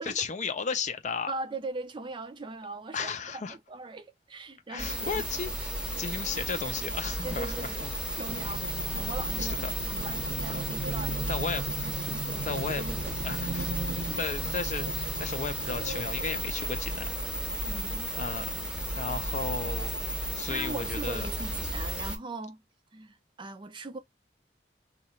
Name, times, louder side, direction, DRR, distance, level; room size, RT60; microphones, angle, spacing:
voice 1, 0.0-1.3 2.9-3.6 4.7-7.9 9.4-9.8 10.4-10.6 11.1-11.6 12.5-12.8 13.2-13.7 14.2-17.1 18.1-18.5 19.0-19.9 20.4-21.3, left 5 dB, 40° left, 0.5 m, -34 dB
voice 2, 1.3-5.3 6.0-6.1 7.2-8.6 8.9-13.1 14.1-14.2 17.7-18.1 20.5-22.6 22.9-24.0, right 3 dB, 25° right, 0.4 m, -40 dB
sound 1, 4.8-22.2, right 1 dB, 5° right, 0.8 m, -33 dB
sound 2, 8.3-17.0, right 3 dB, 90° right, 0.6 m, -39 dB
2.9 x 2.3 x 4.2 m
head